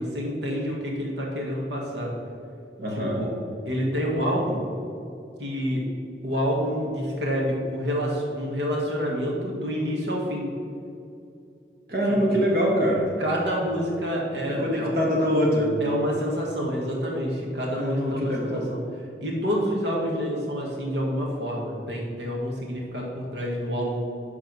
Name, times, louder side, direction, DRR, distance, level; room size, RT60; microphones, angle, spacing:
voice 1, 0.0-2.1 2.9-3.3 3.6-4.6 5.4-5.9 6.2-10.5 12.3-12.4 13.2-14.9 15.8-18.8 19.2-24.0, equal, 85° right, -2 dB, 1.5 m, -28 dB
voice 2, 2.8-3.2 11.9-13.1 14.6-15.7 17.8-18.6, equal, 55° right, -3 dB, 1.5 m, -23 dB
10.5 x 3.5 x 6.0 m, 2.6 s
head